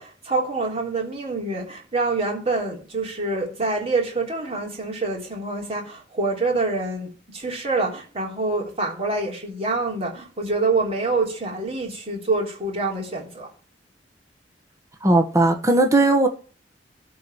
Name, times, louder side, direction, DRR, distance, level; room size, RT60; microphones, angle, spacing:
voice 1, 0.0-13.5, right 3 dB, 35° right, 3.4 m, -26 dB
voice 2, 15.0-16.3, right 2 dB, 20° right, 1.4 m, -17 dB
13.0 x 4.7 x 8.5 m
head